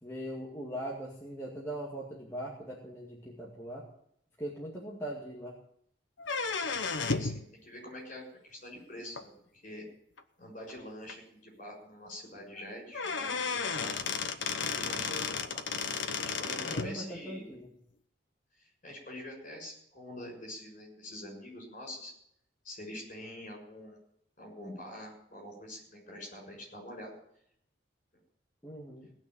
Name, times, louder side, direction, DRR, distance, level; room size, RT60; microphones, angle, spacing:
voice 1, 0.0-3.9 4.4-5.6 16.6-17.7 28.6-29.1, right 1 dB, 15° left, -4 dB, 2.0 m, -40 dB
sound 1, 6.2-7.4 9.1-9.2 10.2-10.3 10.7-10.8 11.1-11.2 12.6-12.7 12.9-16.9, left 5 dB, 75° left, 1.0 m, -33 dB
voice 2, 7.0-9.3 9.6-9.8 10.4-14.0 14.5-15.7 16.2-17.5 18.6-22.1 22.6-24.0 24.4-27.1, left 1 dB, 40° left, 0 dB, 6.4 m, -45 dB
18.0 x 6.2 x 9.4 m, 0.70 s
head